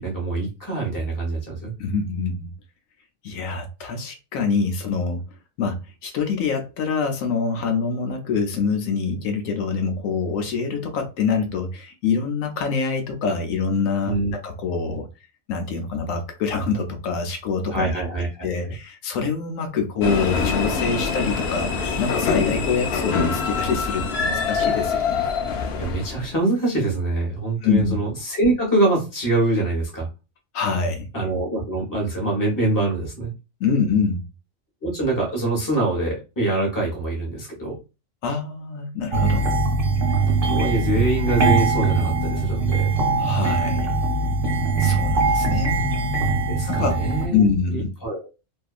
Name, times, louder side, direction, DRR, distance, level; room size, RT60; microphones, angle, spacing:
voice 1, 0.0-1.7 14.1-14.3 17.7-18.5 25.8-30.1 31.1-33.3 34.8-37.8 40.2-42.9 45.6-45.7 46.5-47.4 48.0-48.3, right 2 dB, 15° left, 0.9 m, -24 dB
voice 2, 1.8-2.5 3.2-5.2 5.6-15.1 15.5-17.9 18.4-25.2 27.6-28.0 30.5-31.1 33.6-34.2 38.2-39.5 43.2-44.0 44.8-45.9 46.7-47.0 47.3-47.9, left 5 dB, 85° left, 1.0 m, -25 dB
sound 1, 20.0-26.3, left 5 dB, 60° left, 0.7 m, -24 dB
sound 2, 39.1-47.3, right 3 dB, 50° right, 0.8 m, -21 dB
2.7 x 2.4 x 2.3 m
omnidirectional pair, 1.4 m